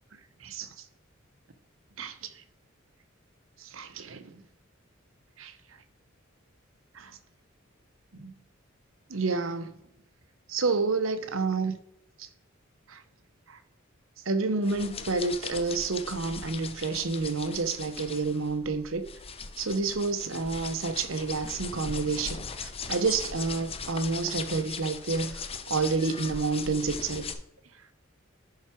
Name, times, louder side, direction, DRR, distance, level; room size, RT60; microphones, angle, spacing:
voice 1, 2.0-2.3 3.6-4.4 5.4-5.5 6.9-7.2 8.1-8.3 9.1-9.7 10.5-11.8 12.2-12.3 12.9-13.0 13.5-13.6 14.3-19.1 19.6-27.3, right 4 dB, 75° right, 0.8 m, -29 dB
sound 1, 14.6-27.3, left 5 dB, 30° left, 0.6 m, -39 dB
10.5 x 4.7 x 4.5 m
head